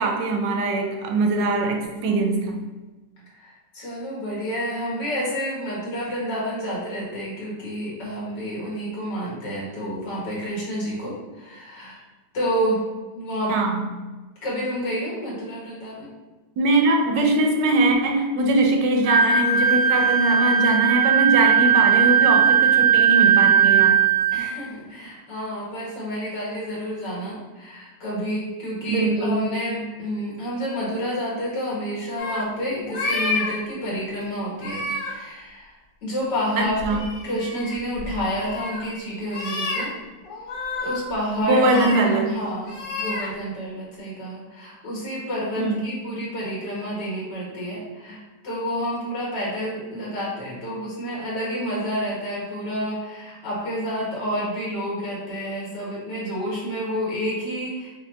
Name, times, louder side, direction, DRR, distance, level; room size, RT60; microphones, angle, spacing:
voice 1, 0.0-2.6 13.5-13.9 16.6-24.0 28.8-29.5 36.6-37.0 41.4-42.3 45.6-45.9, right 2 dB, 85° right, 3 dB, 1.3 m, -22 dB
voice 2, 3.3-12.0 12.3-12.8 13.1-13.6 14.4-16.1 24.3-39.9 40.8-41.6 42.3-57.9, equal, 80° left, -5 dB, 2.1 m, -29 dB
Wind instrument woodwind instrument, 19.0-24.5, right 7 dB, 50° right, 0.4 m, -18 dB
sound 1, 32.2-32.4 32.9-33.5 34.5-35.1 36.7-38.9 39.3-39.8 40.2-41.0 41.5-42.2 42.6-43.3, left 3 dB, 60° left, 1.3 m, -30 dB
5.3 x 2.2 x 3.2 m, 1.2 s
omnidirectional pair, 1.8 m